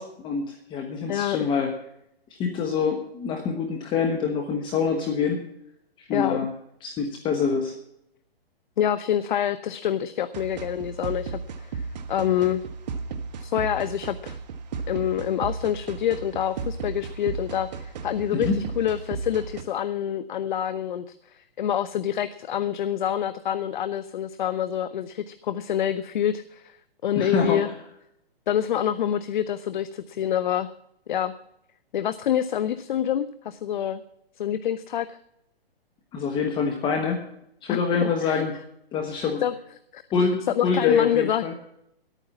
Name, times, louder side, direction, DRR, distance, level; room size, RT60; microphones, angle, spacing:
voice 1, 0.0-1.7 2.4-5.4 6.0-6.5 6.8-7.7 18.3-18.6 27.1-27.6 36.1-37.2 37.6-38.5 38.9-39.4 40.1-41.5, left 5 dB, 15° left, 3 dB, 1.1 m, -25 dB
voice 2, 6.1-6.4 8.8-11.4 11.7-12.6 13.4-14.4 14.9-26.8 27.0-27.7 28.5-30.7 31.1-31.3 31.9-34.0 34.4-35.2 37.7-38.4 39.4-39.5 39.9-40.0 40.5-41.5, left 10 dB, 50° left, 13 dB, 0.7 m, -27 dB
sound 1, 10.3-19.6, right 5 dB, 45° right, 1.2 m, -35 dB
11.5 x 9.1 x 7.2 m, 0.77 s
hypercardioid pair, 145°, 30 cm